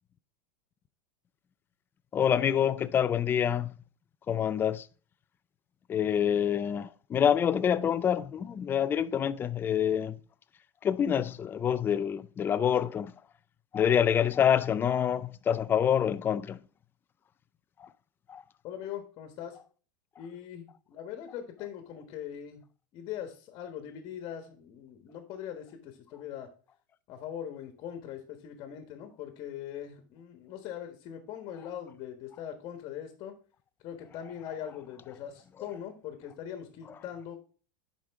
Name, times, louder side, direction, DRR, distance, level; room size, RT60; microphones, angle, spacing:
voice 1, 2.1-3.7 4.3-4.9 5.9-10.2 10.8-13.1 13.7-16.6 17.8-17.9 18.3-18.4 35.6-35.7 36.8-37.0, left 8 dB, 20° left, 0.4 m, -27 dB
voice 2, 18.6-19.6 20.2-22.6 22.9-26.5 27.1-33.4 33.8-37.4, left 10 dB, 40° left, 1.4 m, -41 dB
11.0 x 5.2 x 3.6 m
supercardioid pair, 140°, 11 cm